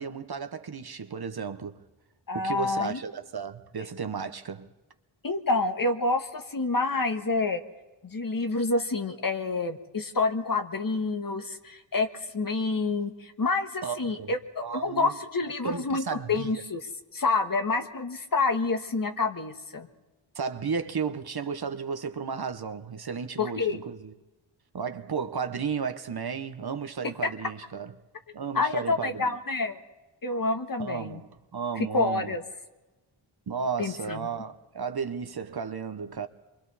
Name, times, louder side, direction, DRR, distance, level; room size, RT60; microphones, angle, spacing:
voice 1, 0.0-1.8 2.3-4.7 13.8-14.3 14.6-15.2 15.6-16.5 20.3-24.1 24.7-27.9 28.3-29.3 30.8-32.4 33.5-36.3, right 6 dB, 50° right, 1.1 m, -34 dB
voice 2, 2.3-3.0 5.2-7.6 8.0-12.1 12.3-19.9 23.4-23.8 27.4-27.5 28.5-29.8 30.2-31.2 31.8-32.4 33.8-34.3, left 3 dB, 45° left, 1.5 m, -28 dB
28.0 x 24.0 x 4.2 m
cardioid pair, 70°, 49 cm